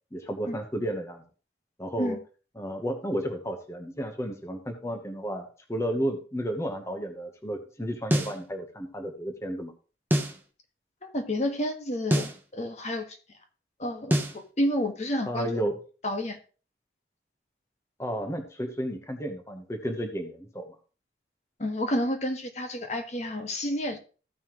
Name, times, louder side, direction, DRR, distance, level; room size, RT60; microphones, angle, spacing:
voice 1, 0.1-1.2 1.8-2.2 2.6-9.7 15.2-15.8 18.0-20.7, equal, 15° left, 4 dB, 1.1 m, -32 dB
sound 1, 8.1-8.4 10.1-10.4 12.1-12.4 14.1-14.4, equal, 10° right, 0.9 m, -25 dB
voice 2, 11.0-13.0 13.8-15.6 16.0-16.4 21.6-24.0, left 1 dB, 40° left, 5 dB, 1.4 m, -30 dB
14.5 x 5.6 x 3.0 m, 0.36 s
head